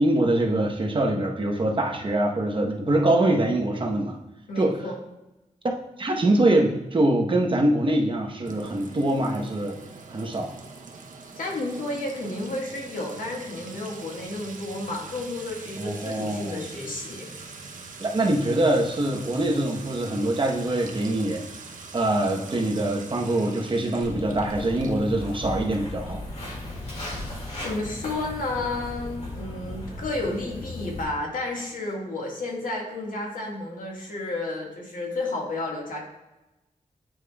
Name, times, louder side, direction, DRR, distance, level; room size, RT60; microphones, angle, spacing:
voice 1, 0.0-4.2 4.6-4.9 6.0-9.8 10.1-10.5 15.8-16.6 18.0-21.4 21.9-26.2, right 1 dB, 40° right, 0 dB, 1.0 m, -24 dB
voice 2, 4.5-5.0 11.3-17.3 27.6-36.0, left 2 dB, 90° left, -1 dB, 1.6 m, -32 dB
Sink (filling or washing) / Trickle dribble / Fill (with liquid), 8.4-25.9, right 4 dB, 80° right, 0.8 m, -43 dB
Walk footsteps, 24.0-31.0, left 1 dB, 55° left, 2.1 m, -36 dB
9.1 x 5.0 x 2.3 m, 0.99 s
wide cardioid pair, 120°, 13 cm